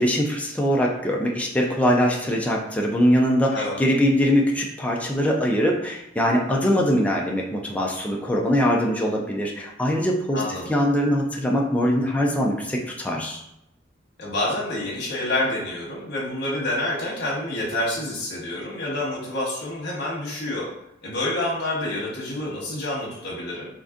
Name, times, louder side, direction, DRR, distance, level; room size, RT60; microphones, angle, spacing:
voice 1, 0.0-10.4 10.7-13.4, equal, 5° left, -1 dB, 0.4 m, -22 dB
voice 2, 10.3-10.7 14.2-20.7 21.0-23.7, left 1 dB, 60° left, -5 dB, 1.1 m, -28 dB
3.9 x 3.4 x 2.5 m, 0.79 s
head